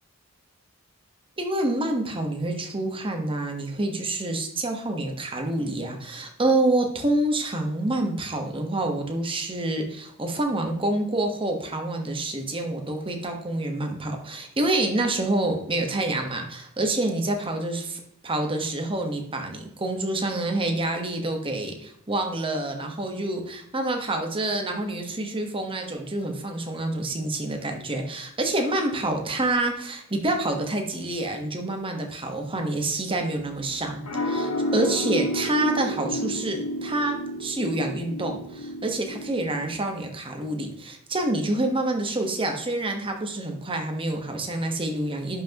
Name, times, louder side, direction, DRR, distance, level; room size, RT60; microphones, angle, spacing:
voice 1, 1.4-45.4, right 2 dB, 25° right, 3 dB, 1.2 m, -27 dB
sound 1, 33.4-39.7, equal, 85° left, 1.6 m, -31 dB
11.0 x 5.9 x 2.9 m, 0.73 s
head